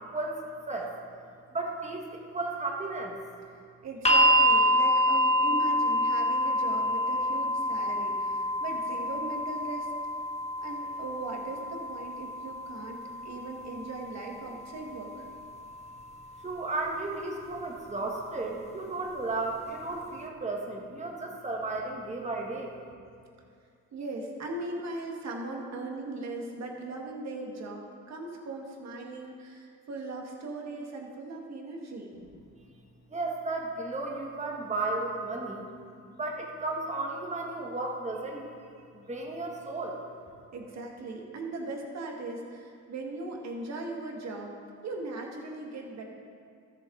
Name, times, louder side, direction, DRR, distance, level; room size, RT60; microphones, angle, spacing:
voice 1, 0.1-0.4 0.7-0.9 1.5-3.1 16.4-22.7 33.1-35.7 36.1-38.5 38.9-40.0, right 2 dB, 25° right, 0 dB, 1.6 m, -34 dB
voice 2, 3.8-9.9 10.6-15.3 23.9-32.1 40.5-44.5 44.8-46.0, right 2 dB, 60° right, 1 dB, 1.7 m, -39 dB
sound 1, 4.0-16.1 17.2-17.3, equal, 20° left, 1.2 m, -28 dB
13.5 x 7.6 x 3.8 m, 2.3 s
cardioid pair, 90°, 30 cm